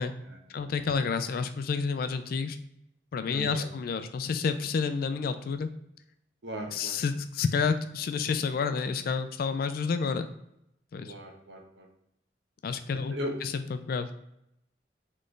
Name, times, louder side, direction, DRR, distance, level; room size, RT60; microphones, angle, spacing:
voice 1, 0.5-2.6 3.1-5.7 6.7-10.3 10.9-11.1 12.6-13.2 13.4-14.1, left 5 dB, 55° left, 10 dB, 0.3 m, -29 dB
voice 2, 3.3-3.6 6.4-7.0 11.0-11.9 13.1-13.3, equal, 90° right, 2 dB, 0.9 m, -37 dB
4.2 x 3.2 x 3.2 m, 0.79 s
head